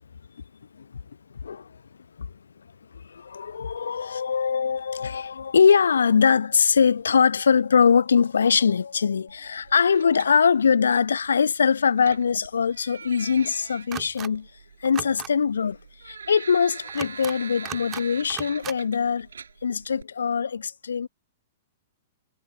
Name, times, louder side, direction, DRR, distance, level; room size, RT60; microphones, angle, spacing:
voice 1, 2.9-14.5 14.8-15.8 16.0-19.3 19.6-21.1, left 6 dB, 70° left, 0.7 m, -22 dB
sound 1, 9.3-20.0, right 6 dB, 70° right, 4.6 m, -44 dB
sound 2, 13.9-14.3 14.8-15.3 16.9-17.3 17.6-18.0 18.3-18.8, right 11 dB, 25° right, 2.0 m, -36 dB
figure-of-eight pair, 105°, 0 cm